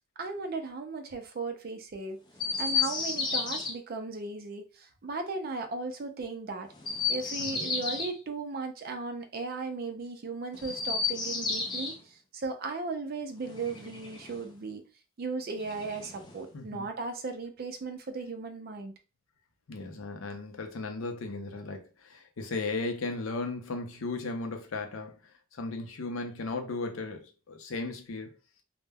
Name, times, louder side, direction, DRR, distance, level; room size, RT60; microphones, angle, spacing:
voice 1, 0.2-2.2 2.6-6.7 7.1-14.8 15.2-18.9, right 3 dB, 45° right, 0.4 m, -36 dB
Chirp tweet, 2.4-3.7 6.7-8.1 10.5-12.0 13.4-14.5 15.6-16.5, left 4 dB, 20° left, 0.4 m, -32 dB
voice 2, 16.5-16.9 19.7-25.2 25.6-28.3, left 3 dB, 85° left, 0.5 m, -36 dB
2.1 x 2.1 x 3.3 m
head